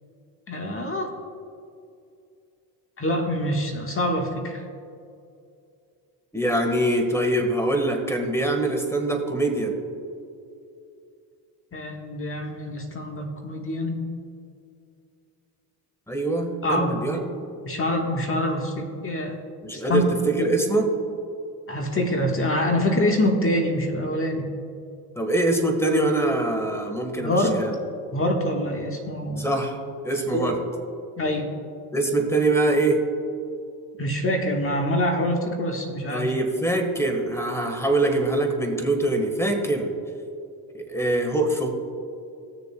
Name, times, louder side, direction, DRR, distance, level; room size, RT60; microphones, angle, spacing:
voice 1, 0.5-1.1 3.0-4.6 11.7-14.0 16.6-17.1 17.6-19.3 19.7-20.1 20.4-20.5 21.7-24.4 27.2-27.5 28.1-29.5 30.3-30.5 31.2-31.5 34.0-36.3, left 1 dB, 25° left, 2 dB, 1.5 m, -25 dB
voice 2, 6.3-9.8 16.1-17.2 19.6-20.9 25.1-27.7 29.4-29.8 30.0-30.6 31.9-33.0 36.1-39.9 40.7-41.7, right 2 dB, 5° left, 5 dB, 1.6 m, -23 dB
17.5 x 6.7 x 2.3 m, 2.5 s
hypercardioid pair, 70°, 48 cm